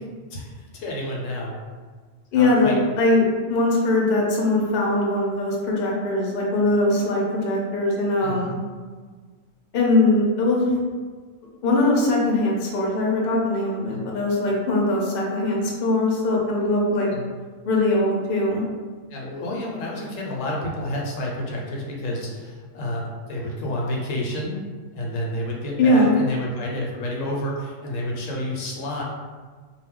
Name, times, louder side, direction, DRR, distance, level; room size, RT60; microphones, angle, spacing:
voice 1, 0.3-1.6 2.3-2.8 8.2-8.5 13.9-14.1 17.1-17.3 19.1-24.6 24.9-29.0, left 1 dB, 80° left, -2 dB, 1.0 m, -30 dB
voice 2, 2.3-8.6 9.7-10.7 11.6-17.1 17.6-18.6 25.8-26.1, left 2 dB, 55° left, -2 dB, 0.7 m, -21 dB
2.3 x 2.0 x 3.5 m, 1.5 s
omnidirectional pair, 1.3 m